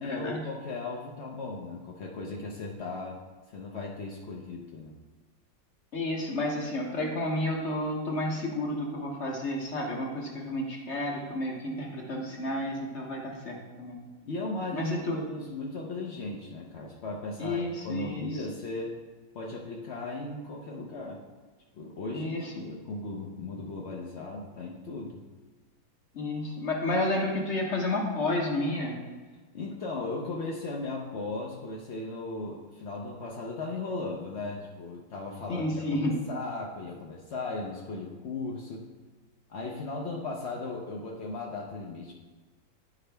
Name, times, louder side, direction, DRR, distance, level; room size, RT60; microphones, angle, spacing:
voice 1, 0.0-3.2 3.5-5.0 14.2-19.0 19.3-21.2 21.7-25.2 29.5-38.9 39.5-42.1, left 3 dB, 75° left, -1 dB, 0.6 m, -37 dB
voice 2, 5.9-14.0 14.7-15.2 17.4-18.3 22.1-22.5 26.1-29.0 35.5-36.2, left 1 dB, 50° left, 0 dB, 0.9 m, -31 dB
10.0 x 4.8 x 3.4 m, 1.4 s
omnidirectional pair, 2.1 m